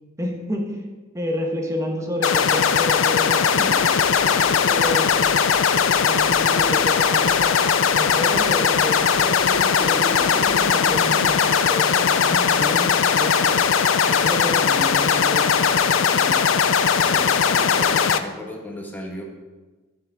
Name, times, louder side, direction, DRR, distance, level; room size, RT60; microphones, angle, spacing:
voice 1, 0.2-0.8 1.1-4.1 4.6-5.3 6.0-13.7 14.1-16.5, left 1 dB, 15° right, 2 dB, 1.3 m, -30 dB
sound 1, 2.2-18.2, left 6 dB, 75° left, 0.5 m, -19 dB
sound 2, 3.8-11.6, left 2 dB, 30° left, 0.7 m, -37 dB
voice 2, 4.1-5.0 5.9-6.4 17.0-19.2, left 1 dB, 10° left, -1 dB, 1.5 m, -37 dB
11.5 x 7.2 x 3.7 m, 1.3 s
head